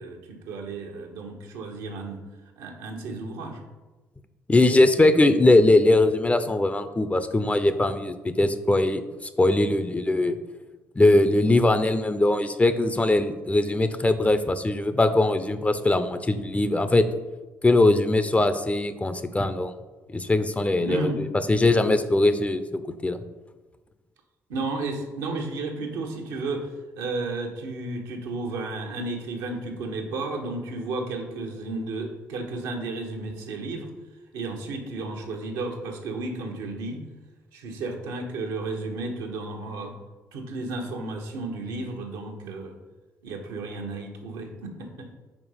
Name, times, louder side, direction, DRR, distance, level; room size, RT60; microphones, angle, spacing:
voice 1, 0.0-2.2 2.6-3.6 20.8-21.2 24.5-26.7 27.0-33.9 34.3-37.0 37.5-40.0 40.3-42.8 43.2-45.1, right 3 dB, 75° right, 2 dB, 1.0 m, -33 dB
voice 2, 4.5-9.0 9.4-10.4 11.0-17.1 17.6-19.7 20.1-23.2, left 2 dB, 20° left, 11 dB, 0.6 m, -21 dB
5.1 x 4.6 x 5.6 m, 1.2 s
hypercardioid pair, 50°, 7 cm